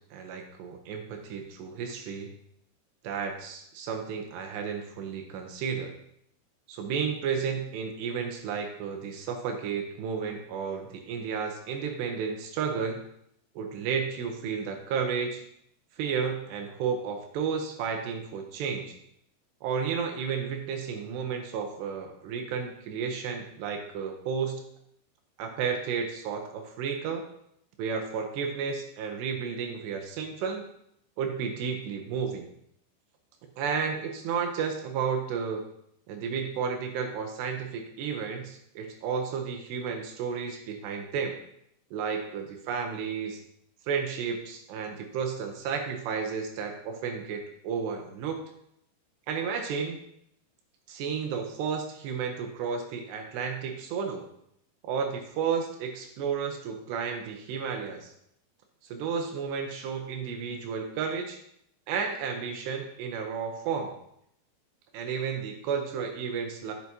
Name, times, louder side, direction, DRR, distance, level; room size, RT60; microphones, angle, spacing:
voice 1, 0.1-2.3 3.0-6.0 6.7-13.0 13.6-15.4 16.0-19.0 19.6-24.6 25.4-27.3 27.8-30.6 31.2-32.5 33.6-35.6 36.1-41.4 41.9-43.4 43.9-48.4 49.3-50.0 50.9-54.3 54.8-58.1 58.9-61.4 61.9-64.0 64.9-66.7, right 6 dB, 80° right, 4 dB, 2.8 m, -32 dB
9.0 x 7.3 x 2.8 m, 0.72 s
omnidirectional pair, 5.1 m